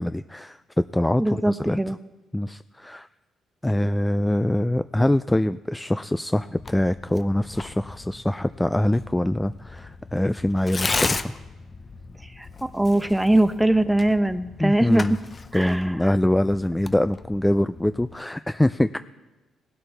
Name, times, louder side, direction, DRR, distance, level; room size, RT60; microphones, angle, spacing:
voice 1, 0.0-1.9 2.3-3.1 3.6-11.3 14.6-15.2 15.5-19.0, left 1 dB, 10° left, 12 dB, 0.3 m, -24 dB
voice 2, 1.2-2.0 12.2-15.2 15.5-16.0, right 1 dB, 5° right, 11 dB, 0.8 m, -22 dB
Tearing, 6.6-18.1, left 3 dB, 30° left, 0.7 m, -35 dB
18.5 x 12.0 x 3.4 m, 1.1 s
cardioid pair, 90°, 0 cm